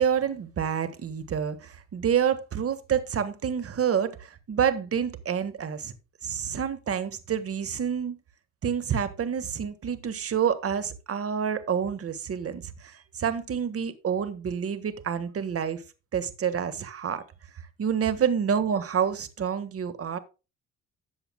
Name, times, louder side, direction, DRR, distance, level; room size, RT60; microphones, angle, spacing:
voice 1, 0.0-5.9 6.2-8.2 8.6-15.8 16.1-17.2 17.8-20.2, right 8 dB, 50° right, 1.5 m, -28 dB
13.0 x 7.9 x 2.2 m
cardioid pair, 90°, 30 cm